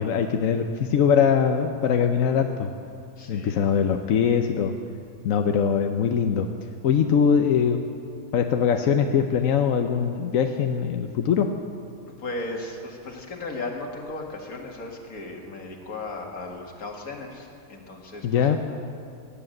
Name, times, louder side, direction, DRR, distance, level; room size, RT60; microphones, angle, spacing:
voice 1, 0.0-2.7 3.3-4.7 5.2-6.5 6.8-7.8 8.3-11.5 18.2-18.6, left 7 dB, 70° left, 5 dB, 1.1 m, -22 dB
voice 2, 3.2-3.6 12.2-18.6, left 2 dB, 90° left, 1 dB, 2.3 m, -36 dB
17.0 x 10.5 x 7.7 m, 2.4 s
omnidirectional pair, 1.5 m